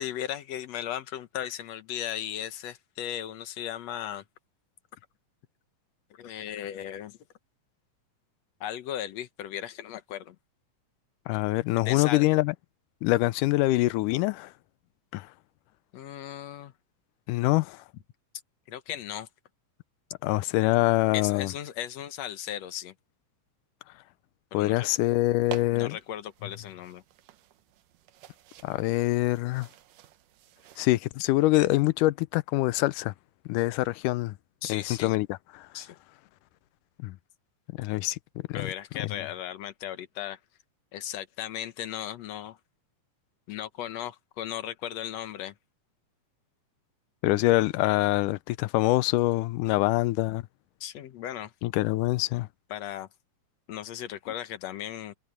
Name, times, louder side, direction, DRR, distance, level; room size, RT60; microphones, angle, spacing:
voice 1, 0.0-4.2 6.1-7.2 8.6-10.4 11.9-12.3 15.9-16.7 18.7-19.3 21.1-22.9 24.5-24.9 25.7-27.0 34.6-35.1 35.7-36.0 38.5-40.4 40.9-42.6 43.5-45.5 50.8-51.5 52.7-53.1 53.7-55.2, left 11 dB, 65° left, 2.0 m, -36 dB
voice 2, 11.3-12.5 13.0-14.5 15.1-15.3 17.3-17.8 20.2-21.5 24.5-26.0 28.6-29.7 30.8-33.1 33.5-34.4 34.7-35.3 35.5-35.7 37.0-37.2 37.8-38.2 38.5-38.7 47.2-50.4 51.6-52.5, left 18 dB, 90° left, 2.1 m, -25 dB
sound 1, 25.4-30.9, right 12 dB, 85° right, 2.6 m, -48 dB
omnidirectional pair, 3.6 m